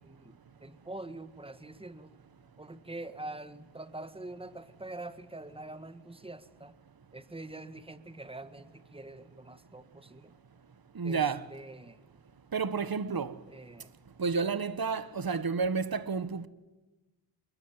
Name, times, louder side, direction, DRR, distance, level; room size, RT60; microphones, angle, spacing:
voice 1, 0.0-2.1 2.6-6.7 7.1-10.3 11.0-12.0 13.5-13.9, right 2 dB, 10° right, 1.7 m, -45 dB
voice 2, 10.9-11.5 12.5-13.3 14.2-16.5, right 5 dB, 50° right, 1.5 m, -30 dB
27.0 x 22.5 x 8.9 m
cardioid pair, 65°, 45 cm